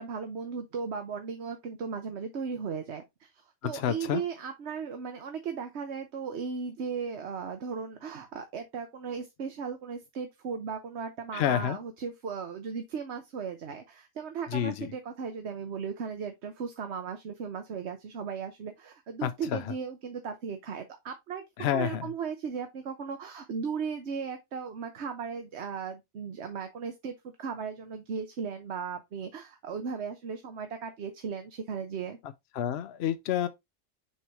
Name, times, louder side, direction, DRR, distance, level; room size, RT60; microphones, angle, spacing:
voice 1, 0.0-21.4 21.7-32.2, right 6 dB, 70° right, 1.2 m, -36 dB
voice 2, 3.7-4.2 11.3-11.8 14.5-14.9 19.2-19.6 21.6-22.1 32.6-33.5, left 10 dB, 65° left, 0.8 m, -29 dB
7.0 x 4.8 x 2.9 m
omnidirectional pair, 1.2 m